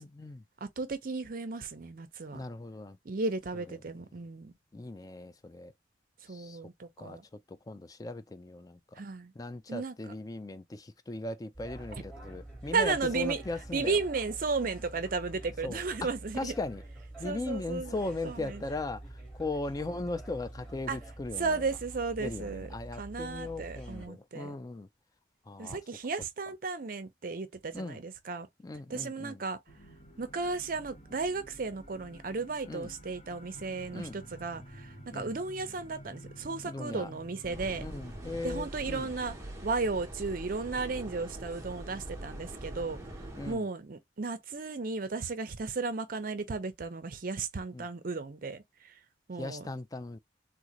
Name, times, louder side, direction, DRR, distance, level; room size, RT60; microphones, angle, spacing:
voice 1, 0.0-0.4 2.3-3.0 3.5-3.8 4.7-5.7 6.3-6.6 7.0-7.2 7.5-9.0 9.4-14.0 15.6-16.1 16.3-16.8 17.2-19.0 19.3-21.6 22.2-24.9 25.5-25.8 27.7-28.0 28.6-29.4 32.7-32.9 33.9-34.1 35.1-35.3 36.6-37.1 37.8-39.1 43.4-43.7 47.7-47.9 49.4-50.2, left 2 dB, 20° left, 0.4 m, -38 dB
voice 2, 0.6-2.4 3.1-4.5 6.3-7.2 9.0-9.3 9.7-9.9 12.7-13.4 13.7-16.5 17.2-18.0 18.2-18.6 20.9-21.0 21.4-22.7 23.0-24.5 25.6-28.5 28.9-29.6 30.2-37.9 38.4-39.4 39.6-43.0 43.5-48.6 49.3-49.7, right 4 dB, 55° right, 0.6 m, -34 dB
sound 1, 11.5-24.1, right 1 dB, 5° left, 1.3 m, -46 dB
sound 2, 29.7-38.5, equal, 40° left, 0.9 m, -50 dB
sound 3, 37.5-43.5, right 1 dB, 15° right, 0.9 m, -43 dB
3.8 x 2.1 x 2.9 m
head